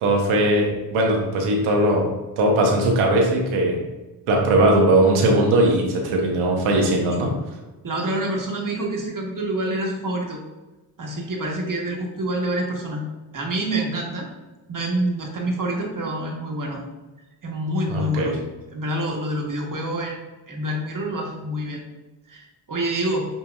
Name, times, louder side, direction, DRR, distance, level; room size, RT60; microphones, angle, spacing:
voice 1, 0.0-2.1 2.4-3.8 4.3-7.3 17.9-18.4, right 1 dB, 85° right, 0 dB, 1.1 m, -19 dB
voice 2, 7.8-10.4 11.0-13.0 13.3-14.3 14.7-16.8 17.4-18.4 18.7-21.8 22.3-23.3, right 1 dB, 40° right, 0 dB, 1.3 m, -27 dB
7.3 x 2.8 x 2.3 m, 1.1 s
supercardioid pair, 45°, 49 cm